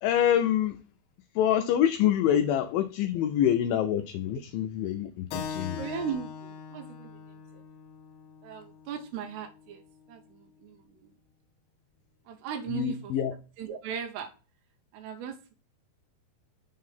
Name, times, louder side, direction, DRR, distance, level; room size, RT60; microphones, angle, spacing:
voice 1, 0.0-0.8 1.3-5.8 12.7-13.4, left 10 dB, 90° left, 2.0 m, -26 dB
Keyboard (musical), 5.3-10.4, left 6 dB, 70° left, 2.4 m, -42 dB
voice 2, 5.8-7.6 8.4-9.8 10.1-10.8 12.3-13.1 13.6-14.3 14.9-15.5, right 8 dB, 90° right, 2.8 m, -38 dB
7.0 x 3.8 x 5.5 m
omnidirectional pair, 4.6 m